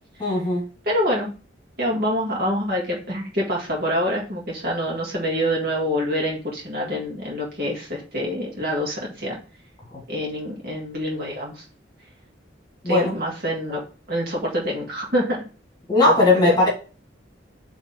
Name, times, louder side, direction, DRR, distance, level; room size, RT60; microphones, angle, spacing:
voice 1, 0.2-0.7 9.9-10.0 12.8-13.1 15.9-16.7, left 2 dB, 20° left, 1.9 m, -18 dB
voice 2, 0.9-1.3 1.8-9.4 10.1-11.6 12.9-13.8 14.1-15.4 16.1-16.5, equal, 55° right, 2.0 m, -26 dB
5.0 x 3.5 x 5.6 m
head